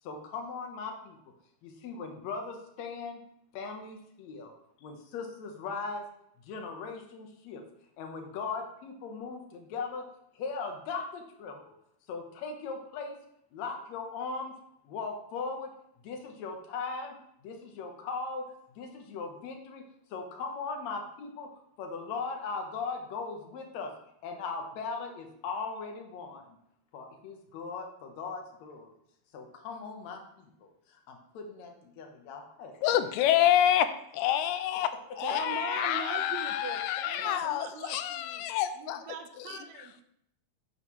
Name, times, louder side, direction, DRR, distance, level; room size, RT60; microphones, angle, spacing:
voice 1, 0.0-1.2 1.6-3.2 3.5-4.5 4.8-6.0 6.4-7.6 8.0-10.0 10.3-11.7 12.1-13.2 13.5-14.5 14.8-15.7 16.0-17.2 17.4-19.8 20.1-21.5 21.8-23.9 24.2-26.6 26.9-29.0 29.3-33.0, left 4 dB, 70° left, 3 dB, 1.7 m, -39 dB
voice 2, 32.8-33.9 34.1-34.9 35.2-39.0, left 11 dB, 90° left, 11 dB, 2.6 m, -27 dB
voice 3, 35.2-38.5 38.7-40.0, right 7 dB, 90° right, 6 dB, 1.5 m, -41 dB
8.3 x 7.6 x 3.1 m, 0.74 s
omnidirectional pair, 4.5 m